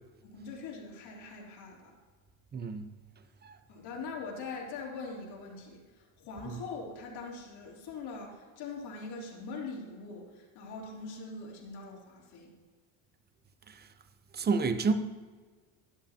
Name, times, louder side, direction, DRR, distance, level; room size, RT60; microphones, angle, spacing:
voice 1, 0.2-1.9 3.7-12.5, left 4 dB, 65° left, -2 dB, 3.3 m, -42 dB
voice 2, 2.5-2.9 3.4-3.5 13.7-13.8 14.3-14.9, right 4 dB, 25° right, 9 dB, 0.8 m, -29 dB
13.0 x 11.0 x 2.9 m, 1.5 s
supercardioid pair, 105°, 43 cm